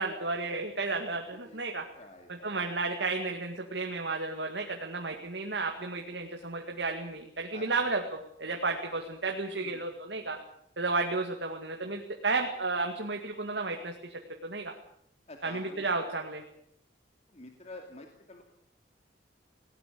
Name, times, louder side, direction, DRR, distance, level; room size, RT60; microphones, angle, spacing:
voice 1, 0.0-1.8 2.3-10.4 10.8-14.1 14.4-14.7 15.4-16.4, right 3 dB, 70° right, 2 dB, 2.2 m, -33 dB
voice 2, 2.0-2.5 7.5-7.8 9.5-9.8 15.3-16.0 17.3-18.4, left 2 dB, 40° left, 3 dB, 2.5 m, -48 dB
19.0 x 18.0 x 8.5 m, 0.72 s
head